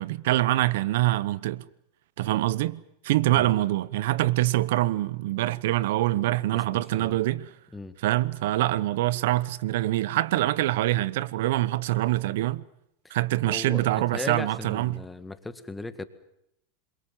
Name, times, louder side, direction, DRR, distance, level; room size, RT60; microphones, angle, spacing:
voice 1, 0.0-1.6 2.2-7.5 8.0-12.6 13.1-15.0, right 16 dB, 70° right, 0.9 m, -25 dB
voice 2, 6.5-7.2 7.7-8.0 13.0-13.2 13.5-16.1, left 3 dB, 10° left, 1.8 m, -38 dB
27.5 x 22.5 x 7.5 m
hypercardioid pair, 115°, 0 cm